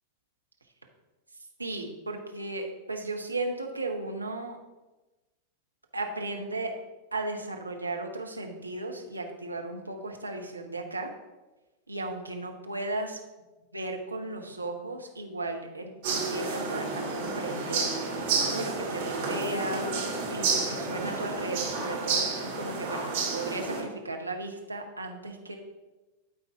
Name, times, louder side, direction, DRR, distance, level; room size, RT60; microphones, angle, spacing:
voice 1, 1.6-4.6 5.9-6.7 7.1-11.1 11.9-13.2 13.7-18.0 18.4-19.9 20.3-25.6, right 2 dB, 80° right, 3 dB, 0.9 m, -35 dB
sound 1, 16.0-23.8, right 4 dB, 50° right, 2.4 m, -30 dB
12.0 x 4.2 x 3.4 m, 1.1 s
figure-of-eight pair, 90°, 0 cm